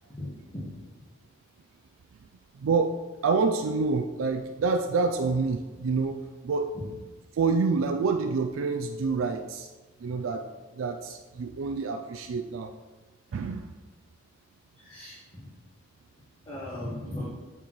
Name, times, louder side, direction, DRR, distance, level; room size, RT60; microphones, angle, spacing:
voice 1, 0.1-0.8 6.7-6.8 14.8-15.4 16.4-17.2, left 1 dB, 25° left, -10 dB, 1.4 m, -38 dB
voice 2, 2.6-3.0 3.2-6.2 6.4-6.7 7.3-9.7 10.0-10.5 10.8-12.7 13.3-13.7, right 4 dB, 80° right, 5 dB, 0.4 m, -27 dB
8.5 x 4.3 x 3.1 m, 1.2 s
head